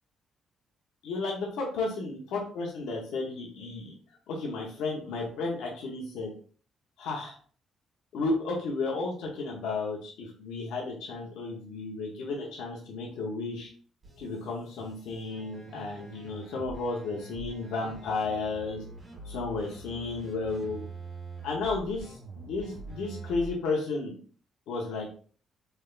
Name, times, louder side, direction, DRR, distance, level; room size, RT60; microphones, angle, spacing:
voice 1, 1.0-3.9 4.3-6.3 7.0-7.3 8.1-13.7 14.2-18.8 19.2-20.8 21.4-24.2 24.7-25.1, left 3 dB, 85° left, -2 dB, 0.8 m, -33 dB
sound 1, 14.0-23.5, right 3 dB, 30° right, 1.7 m, -45 dB
3.3 x 3.2 x 2.4 m, 0.43 s
cardioid pair, 90°, 0 cm